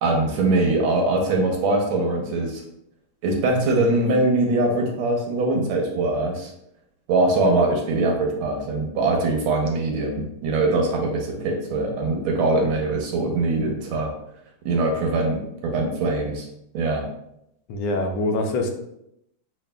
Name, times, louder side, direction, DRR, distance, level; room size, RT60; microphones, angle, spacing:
voice 1, 0.0-2.6 3.2-6.5 7.1-14.1 14.6-16.5 16.7-17.0, right 2 dB, 85° right, 1 dB, 1.7 m, -22 dB
voice 2, 17.7-18.7, left 2 dB, 80° left, 3 dB, 1.4 m, -24 dB
6.1 x 2.3 x 2.2 m, 0.79 s
omnidirectional pair, 2.2 m